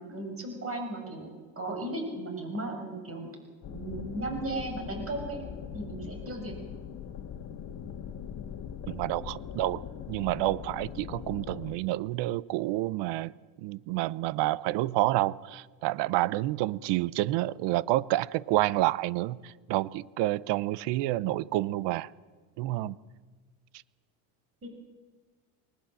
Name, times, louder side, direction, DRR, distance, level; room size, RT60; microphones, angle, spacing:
voice 1, 0.1-1.3 1.5-3.3 3.7-5.4 5.7-6.5 24.6-24.7, right 2 dB, 30° right, 6.6 m, -36 dB
sound 1, 3.6-11.8, left 8 dB, 45° left, 2.0 m, -41 dB
voice 2, 8.9-9.8 10.1-13.3 13.6-22.1 22.6-23.0, right 16 dB, 65° right, 0.8 m, -29 dB
21.0 x 19.5 x 7.7 m
cardioid pair, 120°, 45 cm